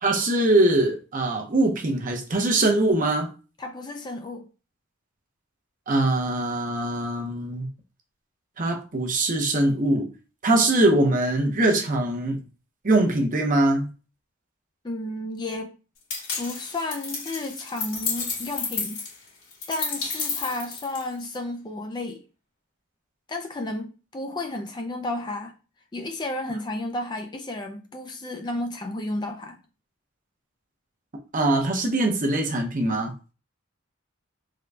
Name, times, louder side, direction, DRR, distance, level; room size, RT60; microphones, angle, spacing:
voice 1, 0.0-3.3 5.9-7.7 8.6-10.1 10.4-12.4 12.8-13.9 31.3-33.1, right 2 dB, 40° right, 0.7 m, -22 dB
voice 2, 3.6-4.5 14.8-15.8 16.4-19.0 19.7-22.2 23.3-25.5 25.9-29.6, left 2 dB, 20° left, 0.4 m, -32 dB
sound 1, 16.1-21.3, left 5 dB, 75° left, 1.7 m, -31 dB
3.7 x 2.2 x 3.3 m
head